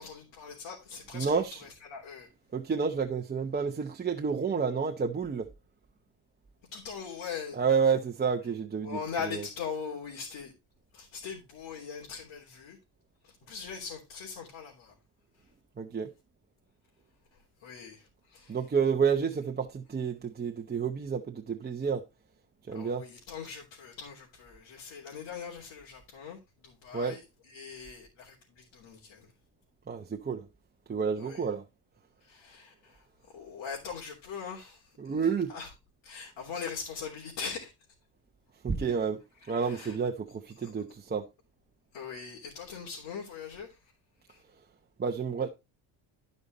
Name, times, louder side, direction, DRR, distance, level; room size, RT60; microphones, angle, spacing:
voice 1, 0.0-2.3 6.7-7.6 8.8-10.5 10.9-12.8 13.2-14.9 17.6-18.6 22.7-29.3 31.2-31.4 32.2-35.1 35.5-35.7 36.0-37.7 39.4-40.0 40.6-40.8 41.9-43.8 44.3-44.4, left 6 dB, 65° left, 3.4 m, -41 dB
voice 2, 1.1-1.6 2.5-5.5 7.5-9.5 15.8-16.1 18.5-22.0 22.7-23.0 26.9-27.2 29.9-30.5 30.9-31.6 35.0-35.5 38.6-39.2 39.5-41.3 45.0-45.5, right 6 dB, 20° right, 0.8 m, -30 dB
13.0 x 5.4 x 4.1 m
cardioid pair, 115°, 48 cm